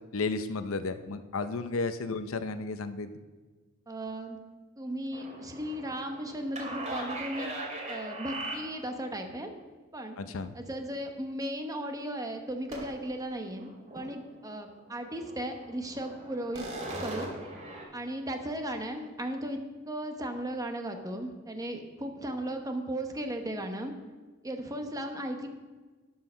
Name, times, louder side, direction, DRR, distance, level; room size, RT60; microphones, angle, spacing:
voice 1, 0.1-3.1 10.2-10.5, left 3 dB, 75° left, 11 dB, 0.6 m, -33 dB
voice 2, 3.9-4.4 4.8-7.5 7.9-9.5 9.9-10.2 10.5-16.7 17.0-17.3 17.9-19.6 19.9-23.9 24.4-25.5, right 1 dB, 15° right, 4 dB, 1.0 m, -36 dB
sound 1, 5.1-9.0 12.7-13.2 13.5-14.1 14.5-14.6 15.0-17.8, right 2 dB, 35° right, 2.6 m, -40 dB
12.5 x 5.6 x 6.2 m, 1.3 s
head